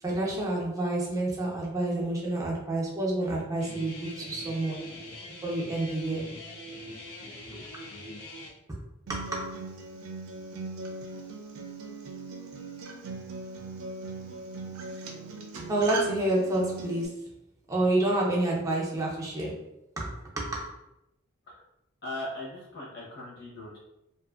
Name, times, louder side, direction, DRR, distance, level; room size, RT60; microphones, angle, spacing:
voice 1, 0.0-4.9 5.4-6.3 9.1-9.6 15.5-17.2 17.7-19.6 20.0-20.8, right 1 dB, 15° right, -3 dB, 0.5 m, -29 dB
Guitar, 3.6-8.5, left 1 dB, 85° left, 0.6 m, -43 dB
Acoustic guitar, 9.1-17.1, right 3 dB, 80° right, 0.4 m, -39 dB
voice 2, 22.0-23.8, left 1 dB, 55° left, -4 dB, 0.9 m, -39 dB
2.6 x 2.4 x 2.4 m, 0.88 s
head